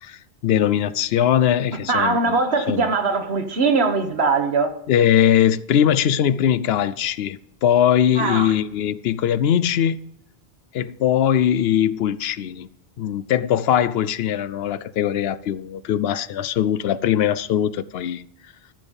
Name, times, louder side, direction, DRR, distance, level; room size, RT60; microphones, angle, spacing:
voice 1, 0.0-2.4 2.7-2.9 4.9-10.0 10.7-12.7 13.0-18.2, left 10 dB, 75° left, 0.8 m, -21 dB
voice 2, 1.9-4.7 8.2-8.5, right 4 dB, 75° right, 1.6 m, -21 dB
14.0 x 6.9 x 5.5 m
omnidirectional pair, 1.1 m